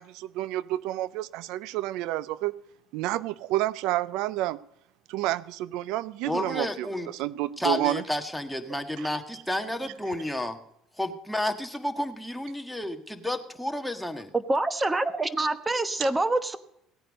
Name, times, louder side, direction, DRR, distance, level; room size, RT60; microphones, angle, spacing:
voice 1, 0.0-2.6 2.9-4.6 5.1-8.0 9.0-9.1 16.0-16.1, right 16 dB, 75° right, 0.4 m, -30 dB
voice 2, 6.2-7.1 7.6-10.6 11.0-14.3, left 1 dB, 5° left, 1.5 m, -31 dB
voice 3, 14.3-16.6, right 2 dB, 15° right, 1.1 m, -26 dB
16.5 x 9.0 x 5.2 m
supercardioid pair, 85°, 0 cm